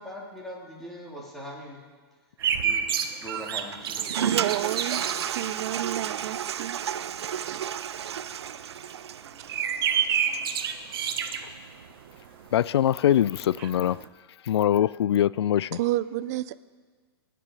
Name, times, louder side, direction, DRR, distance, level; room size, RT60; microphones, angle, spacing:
voice 1, 0.0-1.8 2.6-2.9 3.2-4.5, equal, ahead, -4 dB, 3.1 m, -41 dB
sound 1, 2.4-12.5 12.8-12.9 13.1-14.1, right 8 dB, 60° right, 1.3 m, -30 dB
Toilet flush, 3.7-10.6, right 9 dB, 85° right, 0.6 m, -32 dB
voice 2, 4.1-6.8 7.4-7.6 15.7-16.6, right 15 dB, 40° right, 15 dB, 0.5 m, -31 dB
voice 3, 12.5-14.0 14.5-15.8, left 11 dB, 80° left, 21 dB, 0.4 m, -23 dB
26.0 x 10.0 x 5.0 m, 1.5 s
hypercardioid pair, 155°, 13 cm